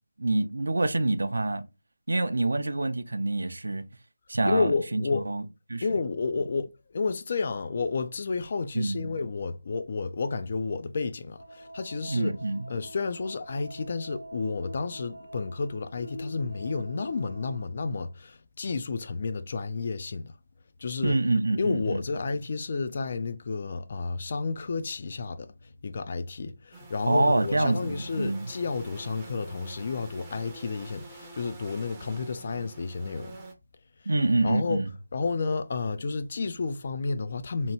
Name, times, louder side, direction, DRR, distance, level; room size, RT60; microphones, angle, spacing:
voice 1, 0.2-1.6 2.1-3.8 4.3-5.4 5.7-5.8 8.7-9.1 12.1-12.7 21.0-22.0 27.1-28.5 34.1-34.9, right 2 dB, 70° right, 0.4 m, -26 dB
voice 2, 4.4-5.3 5.8-12.4 12.7-20.3 20.8-21.2 21.6-25.5 25.8-33.4 34.4-34.8 35.1-37.7, left 4 dB, 40° left, 0.3 m, -31 dB
sound 1, 11.4-17.6, equal, 80° left, 1.3 m, -45 dB
sound 2, 26.7-33.5, right 2 dB, 15° right, 0.5 m, -47 dB
2.8 x 2.2 x 2.8 m
figure-of-eight pair, 165°, 0 cm